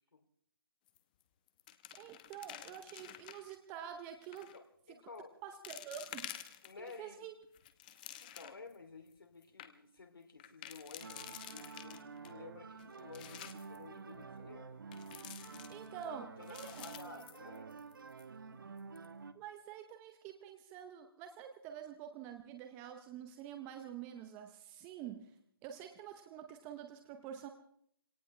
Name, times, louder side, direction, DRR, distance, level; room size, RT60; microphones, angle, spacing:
sound 1, 0.9-1.2 1.5-3.6 4.2-4.6 5.1-5.2 5.6-7.0 7.4-8.7 9.1-9.2 9.4-9.7 10.4-12.3 12.8-13.8 14.9-16.1 16.4-17.9 18.2-18.3 18.8-19.1, left 11 dB, 20° left, 0.9 m, -50 dB
voice 1, 2.0-4.5 5.4-6.3 6.8-7.3 15.7-16.9 19.3-25.4 25.6-27.5, right 9 dB, 15° right, 7 dB, 0.7 m, -47 dB
voice 2, 4.5-5.4 6.6-7.3 8.2-14.8 15.7-16.1 16.4-17.8, left 4 dB, 65° left, 6 dB, 2.9 m, -53 dB
sound 2, 11.0-19.3, right 5 dB, 65° right, 1.3 m, -50 dB
24.5 x 18.0 x 3.3 m, 0.67 s
figure-of-eight pair, 155°, 12 cm